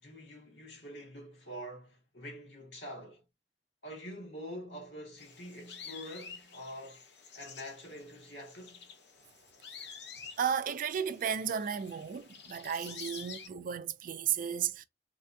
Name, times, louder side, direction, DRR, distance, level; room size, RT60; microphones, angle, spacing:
voice 1, 0.0-3.2 3.8-7.0 7.3-8.9, equal, 90° left, 1.7 m, -46 dB
sound 1, 5.2-13.5, left 6 dB, 65° left, 0.7 m, -49 dB
voice 2, 10.4-14.8, right 8 dB, 50° right, 0.3 m, -34 dB
3.4 x 2.2 x 2.6 m
head